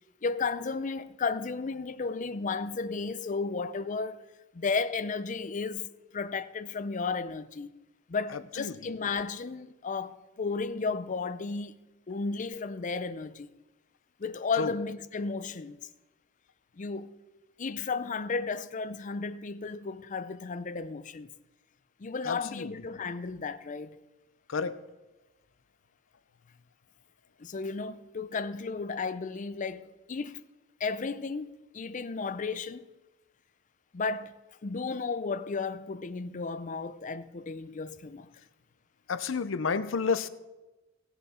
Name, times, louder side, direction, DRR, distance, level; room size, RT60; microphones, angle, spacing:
voice 1, 0.2-4.2 4.5-7.7 8.1-11.8 12.1-13.5 14.2-15.8 16.8-17.1 17.6-21.3 22.0-24.0 27.4-30.4 30.8-32.9 33.9-34.3 34.6-38.3, left 4 dB, 40° left, 0.5 m, -33 dB
voice 2, 22.2-22.7 24.5-24.8 39.1-40.3, left 5 dB, 85° left, 0.6 m, -30 dB
17.0 x 7.0 x 4.3 m
head